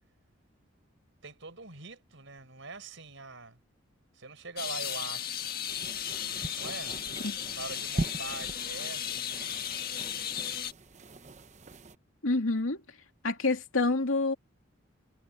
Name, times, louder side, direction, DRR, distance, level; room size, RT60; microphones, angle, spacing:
voice 1, 1.2-3.6 4.1-5.5 6.5-7.0 7.5-9.8, right 3 dB, 65° right, 5.8 m, -43 dB
sound 1, 4.6-10.7, left 9 dB, 50° left, 1.6 m, -35 dB
sound 2, 5.7-12.0, right 2 dB, 35° right, 0.9 m, -41 dB
voice 2, 12.2-12.8 13.2-14.3, left 3 dB, 80° left, 2.6 m, -27 dB
head